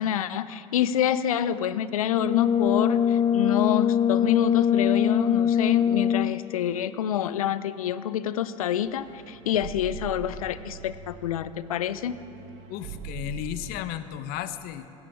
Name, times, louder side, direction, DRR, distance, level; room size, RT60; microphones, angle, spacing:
voice 1, 0.0-12.2, left 10 dB, 85° left, 16 dB, 0.5 m, -27 dB
Brass instrument, 2.1-6.5, left 8 dB, 25° left, 0.4 m, -23 dB
sound 1, 8.8-13.8, right 5 dB, 65° right, 1.5 m, -42 dB
voice 2, 12.7-15.0, left 12 dB, 60° left, 13 dB, 0.8 m, -34 dB
17.0 x 13.5 x 4.8 m, 2.7 s
hypercardioid pair, 70°, 18 cm